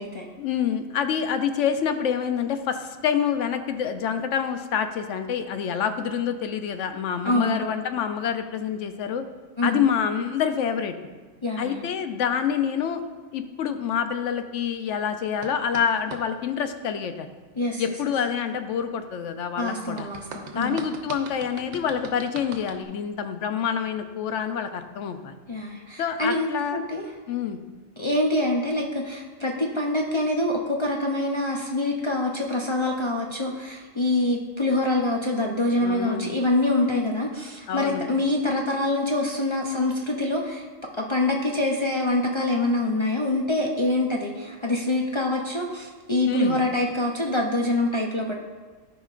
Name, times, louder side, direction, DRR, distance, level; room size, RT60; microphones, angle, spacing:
voice 1, 0.4-9.2 9.6-11.1 11.6-13.0 13.3-17.3 17.8-20.1 20.6-25.3 26.0-26.8 27.3-27.6 35.8-36.4 37.7-38.1 46.3-46.6, left 7 dB, 75° left, 8 dB, 0.9 m, -27 dB
voice 2, 7.2-7.7 9.6-9.8 11.4-11.8 17.6-17.8 19.6-20.8 25.5-27.1 28.0-40.6 41.0-48.3, left 2 dB, 45° left, -1 dB, 0.3 m, -25 dB
sound 1, 15.4-16.2 20.0-22.9, right 4 dB, 65° right, 1.0 m, -40 dB
13.0 x 5.1 x 2.4 m, 1.4 s
omnidirectional pair, 1.3 m